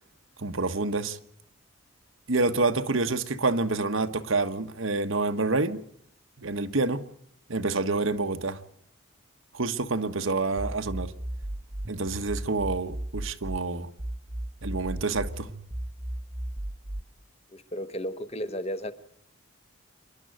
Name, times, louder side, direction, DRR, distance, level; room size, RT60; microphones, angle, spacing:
voice 1, 0.4-1.2 2.3-5.8 6.4-7.0 7.5-8.6 9.5-11.1 11.9-13.9 14.6-15.5, right 3 dB, 70° right, 1.3 m, -27 dB
sound 1, 10.6-13.6 14.0-17.0, right 1 dB, 20° right, 0.9 m, -35 dB
voice 2, 17.5-18.9, equal, 30° left, 1.2 m, -33 dB
26.5 x 12.0 x 9.2 m
head